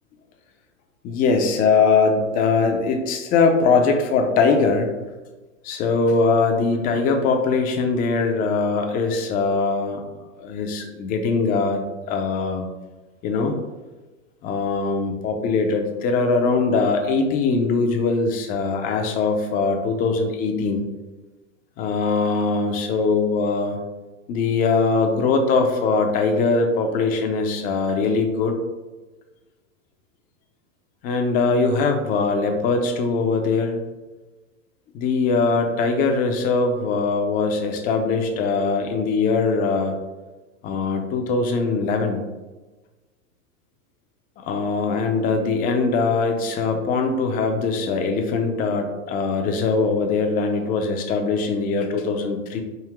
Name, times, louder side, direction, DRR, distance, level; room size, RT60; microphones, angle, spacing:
voice 1, 1.0-4.9 5.6-10.0 10.4-12.6 13.2-13.6 14.4-20.8 21.8-23.8 24.3-28.6 31.0-33.8 34.9-40.0 40.6-42.2 44.4-52.6, left 4 dB, 25° left, 4 dB, 0.4 m, -21 dB
3.6 x 2.7 x 3.0 m, 1.2 s
hypercardioid pair, 110°, 41 cm